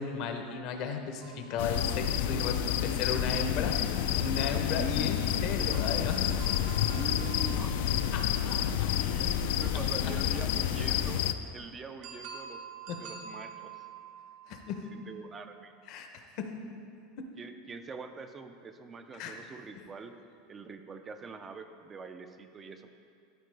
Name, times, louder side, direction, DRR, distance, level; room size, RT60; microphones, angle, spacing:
voice 1, 0.0-3.8 4.2-6.2 8.1-8.9 12.9-13.0 14.5-14.9 15.9-16.1 16.4-16.6 19.2-19.3 19.8-19.9, left 6 dB, 50° left, 5 dB, 0.7 m, -35 dB
sound 1, 1.2-2.9 5.5-9.4 12.0-15.5, right 6 dB, 55° right, 0.7 m, -48 dB
sound 2, 1.6-11.3, left 10 dB, 75° left, 0.3 m, -29 dB
voice 2, 4.7-5.2 6.9-8.1 8.7-11.2 11.5-12.7 13.0-13.9 14.8-15.7 17.4-20.1 20.5-22.9, right 4 dB, 20° right, 7 dB, 0.3 m, -44 dB
12.5 x 4.5 x 3.3 m, 2.4 s
supercardioid pair, 145°, 0 cm